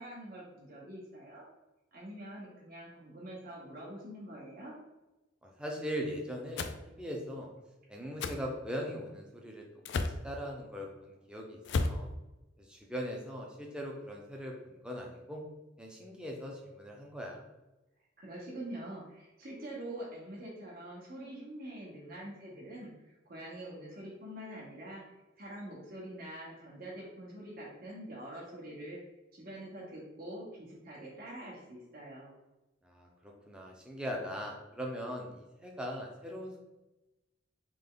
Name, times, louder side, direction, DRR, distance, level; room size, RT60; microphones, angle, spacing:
voice 1, 0.0-1.4 1.9-4.7 18.2-25.0 25.4-29.0 29.3-32.3, right 1 dB, 50° right, -6 dB, 1.3 m, -45 dB
voice 2, 5.4-6.7 7.0-7.5 7.9-12.1 12.6-15.4 15.8-17.5 32.8-36.6, equal, 5° right, -1 dB, 0.7 m, -40 dB
sound 1, 6.6-6.8 8.2-8.4 9.8-10.2 11.6-12.0, left 3 dB, 65° left, 0.4 m, -32 dB
3.8 x 3.3 x 3.8 m, 1.0 s
head